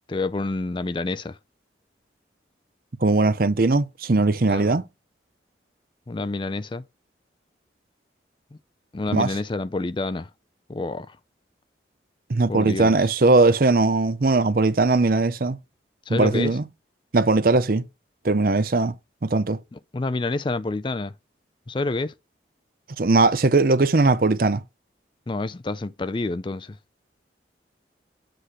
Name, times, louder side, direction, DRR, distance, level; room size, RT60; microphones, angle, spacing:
voice 1, 0.1-1.4 4.5-4.8 6.1-6.8 8.5-8.6 8.9-10.3 10.7-11.2 12.5-13.1 16.1-16.6 19.7-21.1 21.7-22.1 25.3-26.8, left 3 dB, 25° left, 0.4 m, -28 dB
voice 2, 3.0-4.8 9.1-9.3 12.3-15.6 16.1-16.6 17.1-17.8 18.2-18.9 19.2-19.6 23.0-24.6, right 3 dB, 50° right, 0.6 m, -19 dB
7.8 x 3.2 x 6.3 m
head